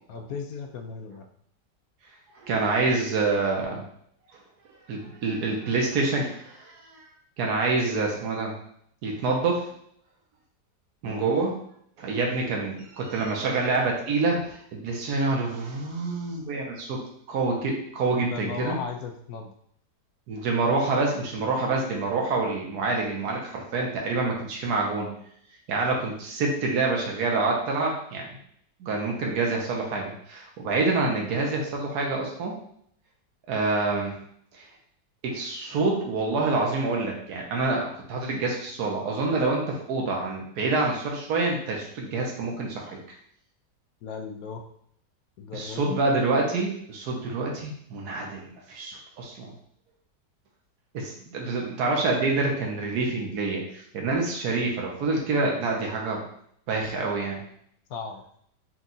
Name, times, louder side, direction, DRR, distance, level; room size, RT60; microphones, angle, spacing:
voice 1, 0.1-1.3 11.0-11.3 18.1-19.5 44.0-44.7 45.4-46.0 57.9-58.2, left 5 dB, 70° left, 4 dB, 0.9 m, -36 dB
voice 2, 2.4-3.8 4.9-7.0 7.4-8.5 9.0-9.6 11.0-11.6 12.0-17.0 17.3-18.8 20.3-25.1 25.7-28.4 28.8-32.6 33.5-34.1 34.5-34.7 35.2-43.0 45.5-49.5 50.9-56.2 56.7-57.4, right 3 dB, 65° right, -1 dB, 1.4 m, -27 dB
4.5 x 2.4 x 4.0 m, 0.67 s
omnidirectional pair, 1.9 m